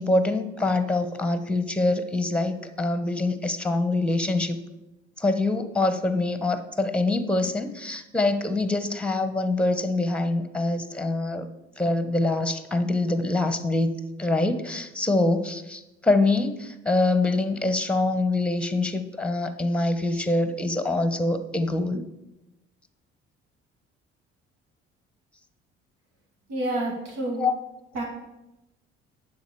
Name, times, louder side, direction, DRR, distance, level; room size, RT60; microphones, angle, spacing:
voice 1, 0.0-4.6 5.2-11.5 11.8-22.0 27.4-27.5, left 2 dB, 5° left, 10 dB, 1.0 m, -25 dB
voice 2, 26.5-27.4 27.9-28.0, right 1 dB, 70° right, -1 dB, 2.0 m, -28 dB
10.5 x 3.9 x 6.8 m, 0.94 s
figure-of-eight pair, 50°, 33 cm